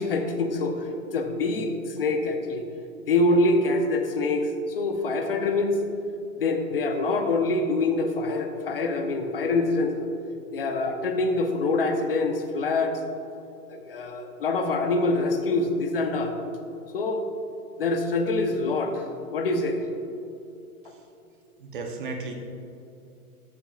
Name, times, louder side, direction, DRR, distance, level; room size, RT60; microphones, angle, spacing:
voice 1, 0.0-2.6 3.0-5.8 6.4-10.1 10.5-13.0 13.7-16.3 16.9-17.2 17.8-19.0 19.3-19.8, left 2 dB, 40° left, 5 dB, 0.7 m, -25 dB
voice 2, 21.6-22.3, right 3 dB, 35° right, 2 dB, 0.9 m, -34 dB
13.5 x 7.1 x 2.4 m, 2.7 s
hypercardioid pair, 175°, 44 cm